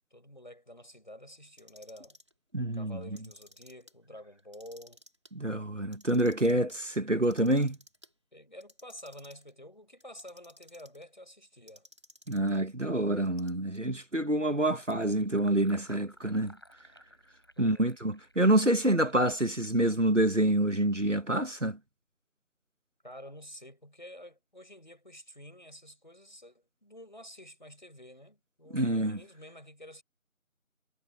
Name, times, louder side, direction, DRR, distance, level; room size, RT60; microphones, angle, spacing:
voice 1, 0.1-2.2 2.7-5.0 8.3-11.9 17.6-18.0 23.0-30.0, equal, 35° left, 7.5 m, -49 dB
Clock, 1.5-2.3 3.0-3.9 4.4-5.3 5.8-6.7 7.2-8.1 8.6-9.5 10.0-11.0 11.7-12.6 13.2-13.9, left 1 dB, 20° right, 5.8 m, -57 dB
voice 2, 2.5-3.0 5.3-7.8 12.3-16.6 17.6-21.8 28.7-29.2, right 1 dB, 60° right, 2.3 m, -27 dB
Fill (with liquid), 14.6-20.8, equal, 15° left, 6.6 m, -59 dB
figure-of-eight pair, 180°, 42 cm